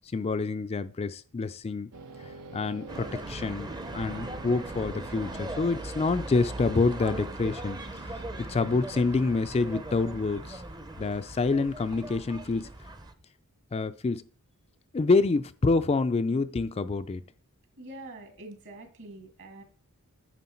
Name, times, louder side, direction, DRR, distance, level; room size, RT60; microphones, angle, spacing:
voice 1, 0.1-1.9 2.5-7.8 8.4-10.6 11.0-12.7 13.7-14.2 14.9-17.2, left 3 dB, 30° left, 11 dB, 0.4 m, -27 dB
sound 1, 1.9-9.0, right 4 dB, 75° right, 0.8 m, -47 dB
sound 2, 2.9-13.1, right 2 dB, 20° right, 0.7 m, -39 dB
voice 2, 17.8-19.6, right 2 dB, 55° right, 4 dB, 2.2 m, -45 dB
9.2 x 6.2 x 4.4 m, 0.41 s
head